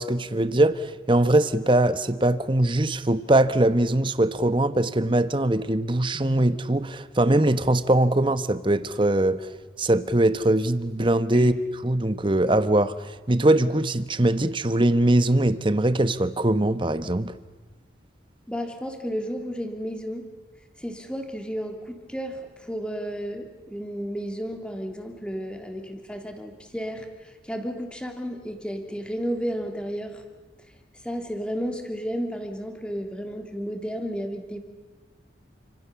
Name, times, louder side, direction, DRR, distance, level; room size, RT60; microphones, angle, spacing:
voice 1, 0.0-9.5 9.8-11.5 11.8-17.3, right 1 dB, 25° right, 1.1 m, -22 dB
voice 2, 18.5-20.3 20.8-30.2 31.0-34.6, equal, 5° left, 3.1 m, -32 dB
29.5 x 26.5 x 7.1 m
head